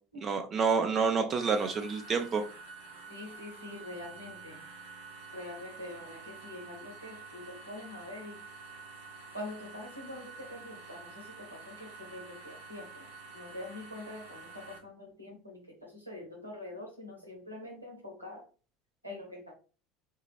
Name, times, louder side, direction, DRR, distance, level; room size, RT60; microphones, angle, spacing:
voice 1, 0.2-2.4, right 5 dB, 35° right, 5 dB, 0.5 m, -28 dB
sound 1, 1.4-14.8, right 4 dB, 65° right, 0.8 m, -49 dB
voice 2, 3.1-4.6 5.3-8.4 9.3-13.1 13.3-18.4 19.0-19.5, left 1 dB, 90° right, 1 dB, 1.0 m, -45 dB
4.5 x 2.4 x 3.2 m, 0.36 s
figure-of-eight pair, 70°, 0 cm